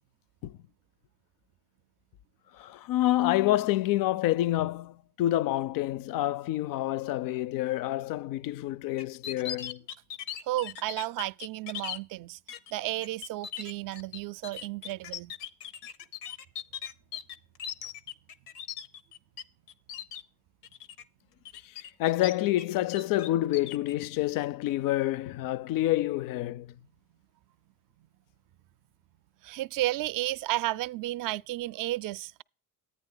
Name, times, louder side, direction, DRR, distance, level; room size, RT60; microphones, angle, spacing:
voice 1, 2.5-9.8 21.5-26.7, left 15 dB, 50° left, 0.5 m, -28 dB
sound 1, 9.0-12.0 12.5-12.7 13.0-19.4 19.7-20.2 20.6-21.0 21.4-22.6 22.9-23.9, left 9 dB, 85° left, 0.8 m, -39 dB
voice 2, 10.5-12.4 12.7-15.3 29.4-32.4, right 16 dB, 45° right, 0.4 m, -32 dB
10.5 x 9.1 x 3.8 m
hypercardioid pair, 75°, 46 cm